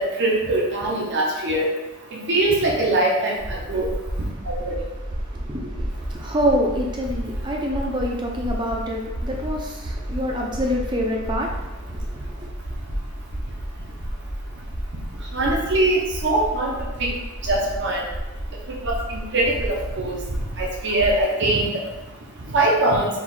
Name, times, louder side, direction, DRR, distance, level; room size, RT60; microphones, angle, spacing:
voice 1, 0.2-1.7 2.3-3.3 3.7-3.9 15.3-16.7 17.5-18.0 18.9-20.2 20.6-21.7 22.5-23.1, right 2 dB, 55° right, -3 dB, 0.8 m, -21 dB
sound 1, 3.4-21.2, right 1 dB, 90° right, 1.1 m, -32 dB
voice 2, 5.5-5.9 6.1-11.5 11.9-12.0 12.4-12.5, equal, 20° right, 0 dB, 0.6 m, -26 dB
4.7 x 2.4 x 4.0 m, 1.0 s
head